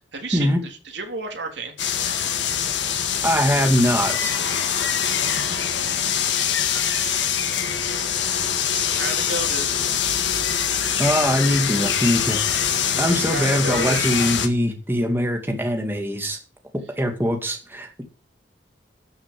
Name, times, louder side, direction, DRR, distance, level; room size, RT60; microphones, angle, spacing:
voice 1, 0.1-1.7 4.7-4.8 5.6-6.1 6.8-9.9 13.0-14.1, right 3 dB, 65° right, 3 dB, 3.6 m, -34 dB
sound 1, 1.8-14.5, left 8 dB, 75° left, 2.0 m, -24 dB
voice 2, 3.2-4.4 10.8-12.7 13.0-16.4 17.0-18.0, equal, 10° right, 3 dB, 2.4 m, -22 dB
13.0 x 7.3 x 7.7 m, 0.35 s
head